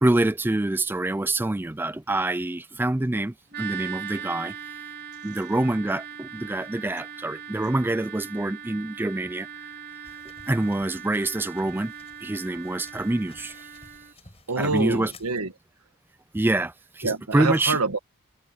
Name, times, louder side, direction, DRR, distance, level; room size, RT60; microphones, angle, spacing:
voice 1, 0.0-4.5 5.2-9.7 10.5-11.9 12.2-13.7 14.6-15.1 16.3-17.8, right 2 dB, 10° right, 0.3 m, -26 dB
sound 1, 3.5-14.1, right 8 dB, 45° right, 5.2 m, -40 dB
sound 2, 10.0-15.4, left 3 dB, 25° left, 6.8 m, -54 dB
voice 2, 14.5-15.5 17.0-18.0, right 3 dB, 90° right, 1.7 m, -26 dB
head